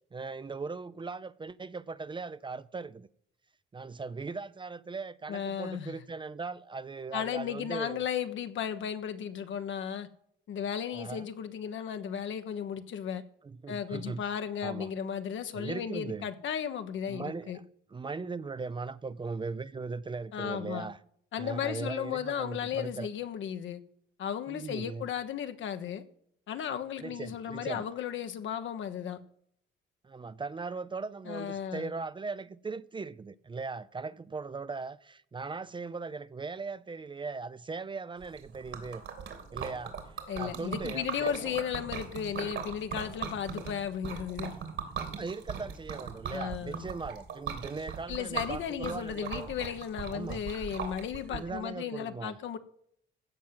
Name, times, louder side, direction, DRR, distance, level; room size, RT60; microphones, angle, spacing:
voice 1, 0.1-3.1 3.7-8.0 10.9-11.3 13.4-14.2 14.6-14.9 15.5-16.3 17.1-17.6 17.9-21.0 21.4-23.1 24.5-25.1 27.0-27.9 30.0-39.0 39.5-41.6 45.0-49.5 50.1-50.4 51.3-52.4, right 4 dB, 25° right, 0.6 m, -39 dB
voice 2, 5.3-5.9 7.1-10.1 10.5-13.2 13.7-17.6 20.3-20.9 21.3-23.8 24.2-26.0 26.5-29.2 31.3-32.0 40.3-44.5 46.3-46.8 48.1-52.6, left 8 dB, 70° left, 1.3 m, -35 dB
Liquid, 38.2-51.4, right 7 dB, 70° right, 3.1 m, -39 dB
15.5 x 5.9 x 7.7 m
cardioid pair, 90°, 20 cm